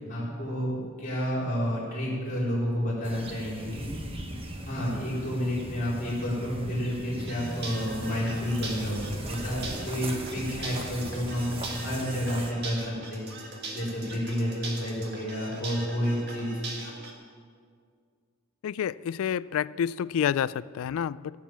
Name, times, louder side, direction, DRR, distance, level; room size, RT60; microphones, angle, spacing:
voice 1, 0.1-3.9 4.6-13.5 13.7-16.5, equal, 40° left, -7 dB, 4.0 m, -30 dB
sound 1, 3.0-12.5, right 1 dB, 25° right, 1.1 m, -39 dB
sound 2, 7.2-17.1, right 2 dB, 50° right, 1.9 m, -40 dB
voice 2, 18.6-21.4, left 8 dB, 75° left, 18 dB, 0.3 m, -29 dB
16.5 x 7.3 x 7.3 m, 2.1 s
head